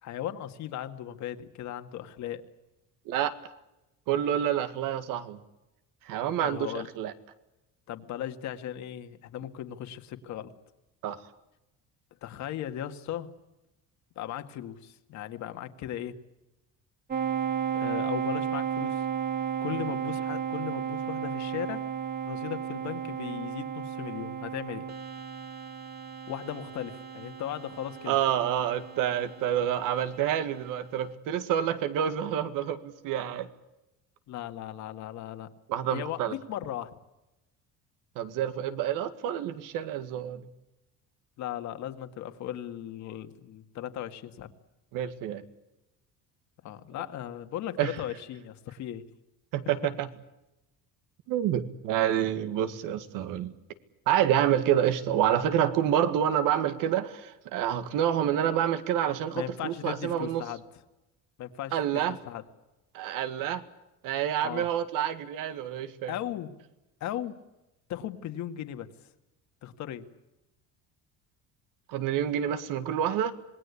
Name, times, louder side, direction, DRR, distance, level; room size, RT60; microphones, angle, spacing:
voice 1, 0.0-2.4 6.4-6.9 7.9-10.5 12.2-13.3 14.2-16.2 17.7-19.0 19.6-21.8 22.2-24.9 26.3-28.2 34.3-35.5 35.9-36.9 41.4-44.5 46.6-49.0 59.3-60.6 61.4-61.8 62.3-62.4 64.4-64.7 66.1-66.5 67.0-67.4 67.9-68.9 69.6-70.1, left 11 dB, 55° left, 8 dB, 2.0 m, -37 dB
voice 2, 4.1-5.4 6.1-7.1 11.0-11.2 28.1-33.5 35.7-36.3 38.2-40.4 44.9-45.4 47.8-48.0 49.5-50.1 51.3-53.5 54.1-60.4 61.7-62.2 62.9-63.6 64.0-66.1 71.9-73.3, right 10 dB, 70° right, 11 dB, 2.0 m, -28 dB
sound 1, 17.1-30.3, right 8 dB, 30° right, 2.2 m, -34 dB
27.0 x 20.0 x 8.4 m, 0.97 s
cardioid pair, 160°, 33 cm